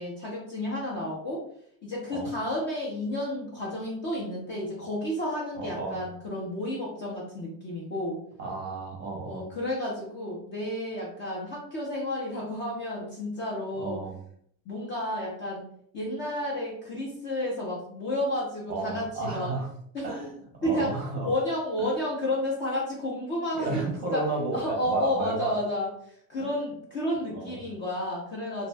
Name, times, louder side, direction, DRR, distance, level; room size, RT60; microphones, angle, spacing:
voice 1, 0.0-1.4 1.8-8.2 9.3-14.0 14.7-15.6 15.9-19.5 19.9-20.1 20.6-20.9 21.2-23.8 24.1-24.2 24.5-28.7, left 1 dB, 30° left, -4 dB, 0.4 m, -31 dB
voice 2, 5.6-6.0 8.4-9.5 13.8-14.2 18.7-19.7 20.0-21.3 21.8-21.9 23.5-25.6 26.4-26.5 27.3-27.6, right 3 dB, 25° right, -1 dB, 0.6 m, -32 dB
2.5 x 2.1 x 3.2 m, 0.65 s
cardioid pair, 170°, 41 cm